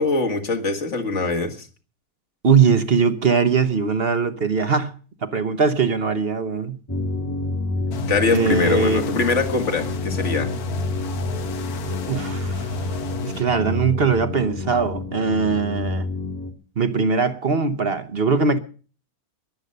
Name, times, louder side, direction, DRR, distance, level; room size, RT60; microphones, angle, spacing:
voice 1, 0.0-1.7 8.1-10.5, left 3 dB, 50° left, 2.1 m, -23 dB
voice 2, 2.4-5.0 5.2-6.8 8.3-9.0 12.1-12.8 13.2-16.1 16.8-18.6, right 5 dB, 45° right, 1.1 m, -21 dB
sound 1, 6.9-16.5, left 2 dB, 15° left, 1.5 m, -28 dB
sound 2, 7.9-13.4, left 5 dB, 70° left, 1.6 m, -33 dB
21.0 x 8.1 x 6.7 m
omnidirectional pair, 1.7 m